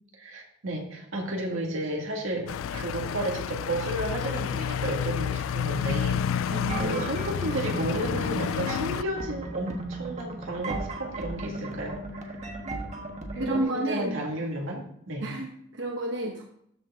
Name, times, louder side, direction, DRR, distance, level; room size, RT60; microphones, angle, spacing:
voice 1, 0.1-12.4 13.3-15.2, right 1 dB, 90° right, 0 dB, 2.1 m, -32 dB
sound 1, 2.5-9.0, left 8 dB, 85° left, 0.3 m, -30 dB
voice 2, 6.5-7.1 12.6-12.9 13.3-14.2 15.2-16.4, right 1 dB, 65° right, 1 dB, 1.0 m, -31 dB
sound 2, 6.7-13.6, right 2 dB, 35° right, 1.3 m, -36 dB
13.5 x 4.6 x 3.6 m, 0.70 s
head